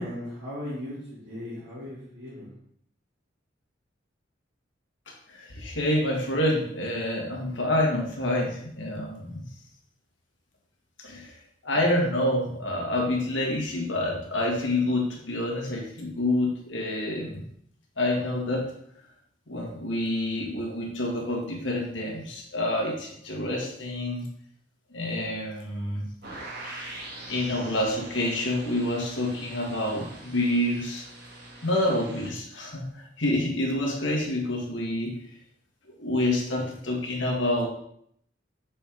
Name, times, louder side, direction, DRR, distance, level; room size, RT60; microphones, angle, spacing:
voice 1, 0.0-2.5, left 1 dB, 85° right, -12 dB, 2.6 m, -37 dB
voice 2, 5.3-9.4 11.0-11.4 11.6-17.4 18.0-18.7 19.5-24.2 24.9-26.1 26.6-27.0 27.3-31.0 31.6-35.2 36.0-37.7, left 1 dB, 70° left, -1 dB, 1.6 m, -28 dB
sound 1, 26.2-32.3, right 2 dB, 60° right, 1.6 m, -43 dB
6.2 x 4.5 x 3.7 m, 0.69 s
head